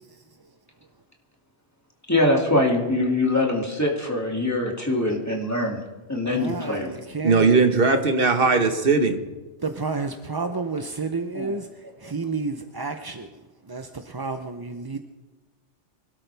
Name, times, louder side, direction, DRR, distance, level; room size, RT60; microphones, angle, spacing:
voice 1, 2.1-5.8 6.1-6.9 11.3-11.5, left 1 dB, 15° left, -1 dB, 2.4 m, -23 dB
voice 2, 6.3-7.6 9.6-15.0, right 4 dB, 25° right, 6 dB, 0.5 m, -31 dB
voice 3, 7.2-9.2, right 4 dB, 50° right, 6 dB, 1.5 m, -19 dB
24.5 x 13.0 x 3.4 m, 1.2 s
omnidirectional pair, 1.2 m